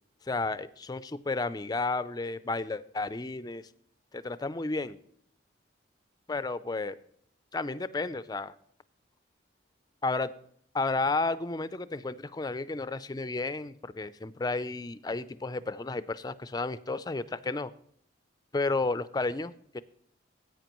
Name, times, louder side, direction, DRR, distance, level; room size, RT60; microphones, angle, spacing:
voice 1, 0.3-3.6 4.1-5.0 6.3-6.9 7.5-8.5 10.0-10.3 10.7-17.7 18.5-19.8, left 3 dB, 20° left, 14 dB, 0.4 m, -32 dB
14.5 x 9.0 x 3.0 m, 0.65 s
head